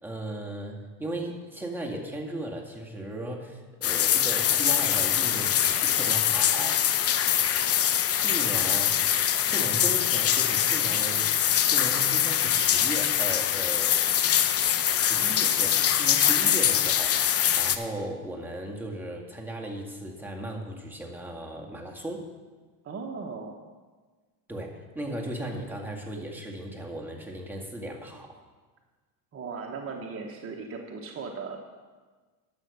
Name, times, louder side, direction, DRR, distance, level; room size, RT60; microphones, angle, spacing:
voice 1, 0.0-6.9 8.0-9.0 9.4-11.3 11.6-14.0 15.0-22.2 24.5-28.3, right 1 dB, 5° right, -1 dB, 1.9 m, -36 dB
sound 1, 3.8-17.8, left 10 dB, 35° left, 0.8 m, -23 dB
voice 2, 22.8-23.6 29.3-31.6, right 4 dB, 30° right, 1 dB, 1.2 m, -37 dB
11.5 x 6.5 x 6.6 m, 1.4 s
supercardioid pair, 95°, 43 cm